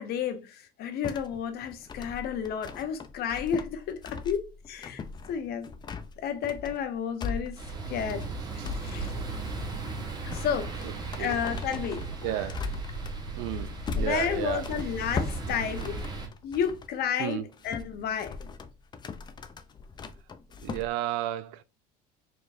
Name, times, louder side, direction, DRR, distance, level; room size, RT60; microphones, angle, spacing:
voice 1, 0.0-5.0 5.3-5.7 6.2-9.1 10.2-10.9 11.2-12.5 14.0-16.0 16.4-18.4, left 8 dB, 55° left, 0.9 m, -32 dB
sound 1, 1.0-16.9 17.3-20.9, left 4 dB, 20° left, 0.4 m, -39 dB
sound 2, 7.6-16.3, right 3 dB, 20° right, 1.3 m, -37 dB
voice 2, 10.8-11.3 12.2-12.6 13.3-14.6 17.2-17.4 20.6-21.6, right 14 dB, 75° right, 0.4 m, -33 dB
4.5 x 3.0 x 2.5 m
supercardioid pair, 110°, 20 cm